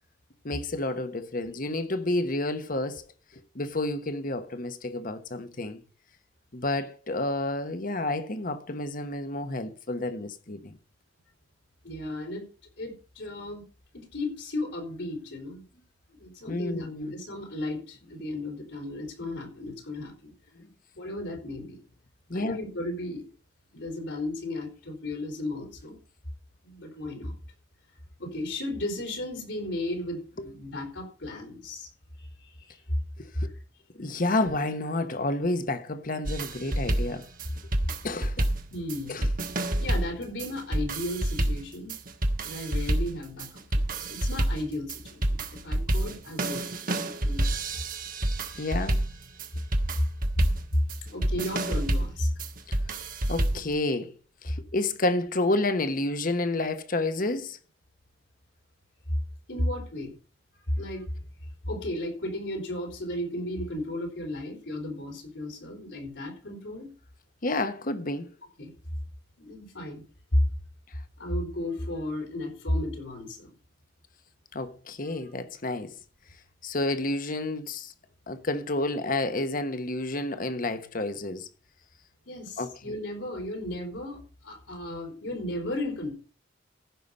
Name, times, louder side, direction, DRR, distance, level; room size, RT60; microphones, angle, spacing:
voice 1, 0.4-3.1 3.5-5.8 6.5-10.7 16.5-17.1 19.2-19.3 20.5-20.7 22.3-22.6 33.2-33.5 33.9-37.3 38.0-38.5 39.1-39.3 48.6-49.0 52.7-52.8 53.3-54.1 54.4-57.6 67.4-68.3 74.5-75.9 76.6-77.9 78.3-81.5 82.6-82.7, left 2 dB, 50° left, 1.2 m, -30 dB
voice 2, 11.8-12.4 12.8-13.6 13.9-15.6 16.1-20.3 20.9-21.8 22.3-23.3 23.7-26.0 26.6-27.3 28.2-31.9 32.2-32.8 33.4-33.5 37.5-37.6 38.7-39.3 39.8-42.0 42.4-47.5 48.5-48.7 49.9-50.1 50.3-52.3 59.5-60.2 60.7-61.1 61.6-66.9 68.6-68.7 69.4-70.0 70.3-70.4 71.2-73.5 82.3-86.2, left 1 dB, 80° left, 4.6 m, -34 dB
sound 1, 36.2-53.7, right 1 dB, 50° right, 1.3 m, -29 dB
15.0 x 5.9 x 5.4 m
head